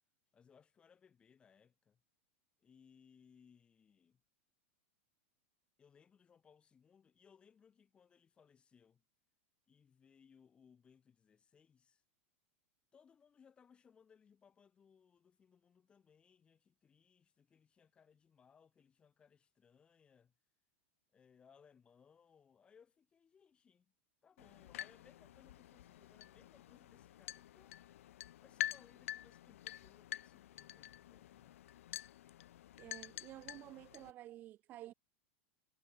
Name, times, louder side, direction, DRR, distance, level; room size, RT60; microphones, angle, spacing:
voice 1, 0.3-2.0 2.6-4.2 5.8-9.0 9.7-12.0 12.9-20.3 21.1-23.9 24.2-27.8 28.4-31.6, left 7 dB, 15° left, 3.6 m, -67 dB
sound 1, 24.4-34.1, left 13 dB, 90° left, 2.2 m, -48 dB
voice 2, 32.8-34.9, right 14 dB, 25° right, 0.9 m, -52 dB
supercardioid pair, 170°, 7 cm